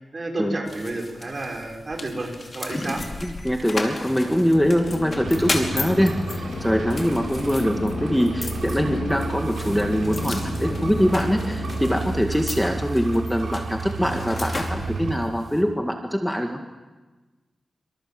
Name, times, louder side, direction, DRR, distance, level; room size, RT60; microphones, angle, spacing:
voice 1, 0.1-3.0, right 2 dB, 40° right, 1 dB, 5.9 m, -31 dB
sound 1, 0.7-15.6, left 2 dB, 40° left, 4.7 m, -35 dB
voice 2, 3.2-16.6, equal, 5° left, 3 dB, 1.8 m, -23 dB
sound 2, 4.5-12.3, left 4 dB, 85° left, 2.2 m, -34 dB
sound 3, 5.2-15.1, right 4 dB, 90° right, 6.8 m, -32 dB
27.5 x 26.0 x 7.8 m, 1.3 s
wide cardioid pair, 95°, 0 cm